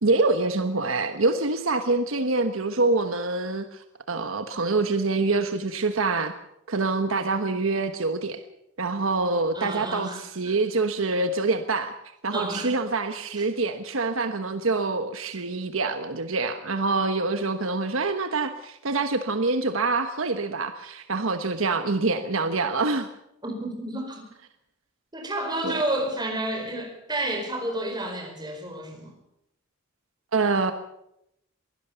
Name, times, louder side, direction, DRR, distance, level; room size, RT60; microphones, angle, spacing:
voice 1, 0.0-6.3 6.7-8.4 8.8-11.9 12.2-23.1 25.6-25.8 30.3-30.7, right 3 dB, 70° right, 8 dB, 1.2 m, -25 dB
voice 2, 9.5-10.5 12.3-12.8 23.4-24.2 25.1-29.1, right 1 dB, 20° right, 3 dB, 4.9 m, -30 dB
22.5 x 16.5 x 7.0 m, 0.81 s
head